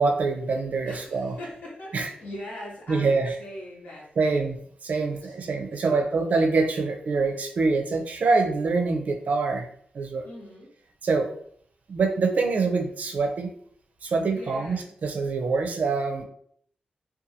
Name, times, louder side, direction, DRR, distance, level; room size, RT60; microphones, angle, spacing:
voice 1, 0.0-1.4 1.9-2.1 2.9-3.3 4.2-9.7 9.9-10.3 11.0-11.3 11.9-13.5 14.0-16.2, right 4 dB, 60° right, 4 dB, 0.4 m, -25 dB
voice 2, 0.8-4.6 4.9-5.4 5.7-6.4 10.2-10.7 14.3-14.9, left 1 dB, 75° left, -5 dB, 1.1 m, -41 dB
2.6 x 2.3 x 2.7 m, 0.63 s
cardioid pair, 90°, 3 cm